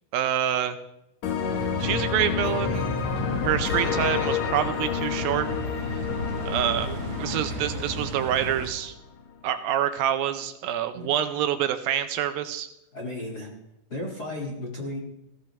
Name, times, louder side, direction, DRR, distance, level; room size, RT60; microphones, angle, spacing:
voice 1, 0.1-0.8 1.8-2.9 3.4-5.5 6.5-6.9 7.2-8.9 9.4-12.7, right 10 dB, 80° right, 9 dB, 2.4 m, -26 dB
sound 1, 1.2-8.9, left 7 dB, 65° left, 1.9 m, -29 dB
sound 2, 1.5-8.7, right 1 dB, 60° right, 2.4 m, -35 dB
voice 2, 12.9-13.5 13.9-15.0, left 1 dB, 35° left, -1 dB, 1.8 m, -34 dB
19.5 x 15.0 x 3.2 m, 0.86 s
omnidirectional pair, 4.4 m